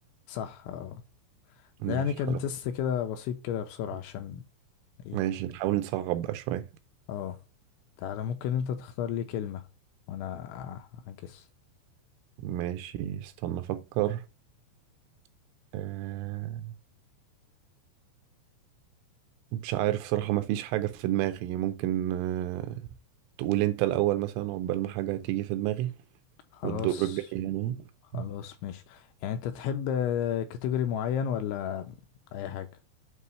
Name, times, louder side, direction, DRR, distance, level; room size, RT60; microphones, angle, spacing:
voice 1, 0.3-1.0 1.8-4.4 5.0-5.2 7.1-7.4 8.0-9.6 10.1-11.4 26.5-27.2 28.1-32.0 32.3-32.7, left 9 dB, 85° left, 2.7 m, -32 dB
voice 2, 1.8-2.4 5.1-6.6 12.4-14.2 15.7-16.7 19.5-22.8 23.4-25.9 26.6-27.8 28.1-28.2, right 14 dB, 85° right, 3.0 m, -30 dB
8.1 x 2.8 x 5.4 m
omnidirectional pair, 5.8 m